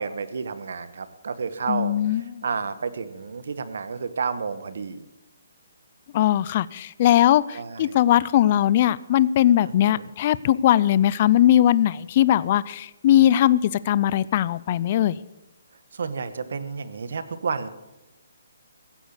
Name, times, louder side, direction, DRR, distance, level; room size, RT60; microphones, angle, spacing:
voice 1, 0.0-1.9 2.4-5.0 7.5-8.0 9.9-10.1 15.9-17.7, right 5 dB, 65° right, 13 dB, 1.2 m, -30 dB
voice 2, 1.7-2.4 6.1-15.2, left 12 dB, 35° left, 19 dB, 0.4 m, -20 dB
15.5 x 8.1 x 8.1 m, 0.98 s
hypercardioid pair, 165°, 0 cm